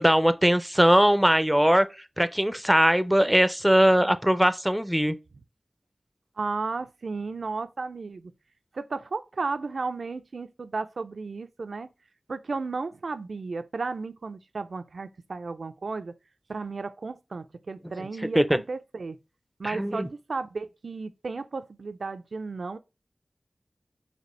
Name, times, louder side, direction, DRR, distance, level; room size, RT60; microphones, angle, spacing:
voice 1, 0.0-1.9 2.2-5.1 18.4-18.6 19.6-20.1, equal, 5° right, 0.4 m, -20 dB
voice 2, 6.4-8.3 8.7-11.9 12.3-16.1 16.5-19.2 19.6-22.8, right 4 dB, 85° right, 0.3 m, -34 dB
4.2 x 2.8 x 3.0 m
cardioid pair, 45°, 0 cm